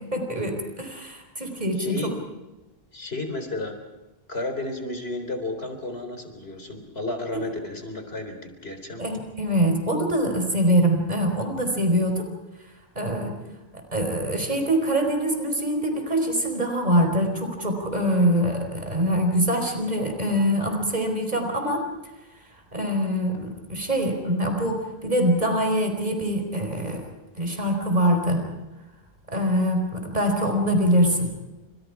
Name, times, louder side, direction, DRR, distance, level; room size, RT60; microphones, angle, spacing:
voice 1, 0.0-2.1 7.3-7.4 9.0-12.3 12.9-13.3 13.7-21.9 22.7-27.1 27.4-28.5 29.3-31.3, equal, 45° right, 4 dB, 4.8 m, -24 dB
voice 2, 1.8-2.2 2.9-3.7 4.3-9.1, left 2 dB, 75° left, 6 dB, 4.2 m, -32 dB
29.5 x 27.0 x 4.9 m, 1.1 s
omnidirectional pair, 1.0 m